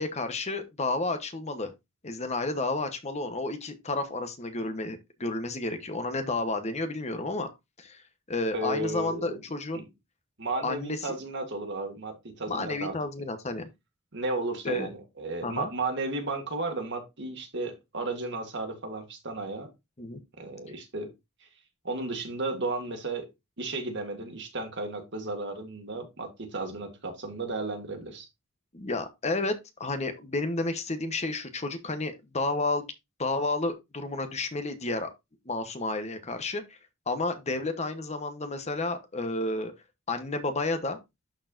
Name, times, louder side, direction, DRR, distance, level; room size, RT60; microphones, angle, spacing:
voice 1, 0.0-1.7 2.0-7.5 7.8-8.0 8.3-9.8 10.6-11.1 12.5-13.6 14.6-14.9 15.4-15.7 20.0-20.2 28.7-29.5 29.8-32.9 33.2-35.1 35.5-36.8 37.1-39.7 40.1-41.0, left 2 dB, 30° left, 1.0 m, -31 dB
voice 2, 8.5-9.4 10.4-13.0 14.1-19.7 20.4-21.1 21.8-23.3 23.6-28.3, right 2 dB, 55° right, 2.0 m, -34 dB
12.0 x 4.6 x 2.6 m
head